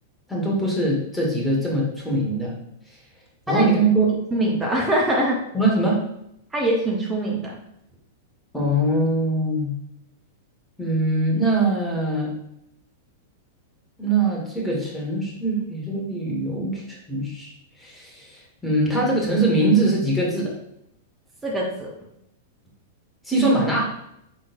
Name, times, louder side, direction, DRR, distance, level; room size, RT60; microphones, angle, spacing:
voice 1, 0.3-2.5 3.5-4.1 5.5-6.0 8.5-9.7 10.8-12.3 14.0-17.5 17.8-20.5 23.2-23.8, right 2 dB, 5° left, -4 dB, 1.5 m, -22 dB
voice 2, 4.3-5.4 6.5-7.6 21.4-21.9, right 1 dB, 15° right, -2 dB, 0.9 m, -23 dB
5.2 x 3.7 x 2.6 m, 0.78 s
figure-of-eight pair, 100°, 0 cm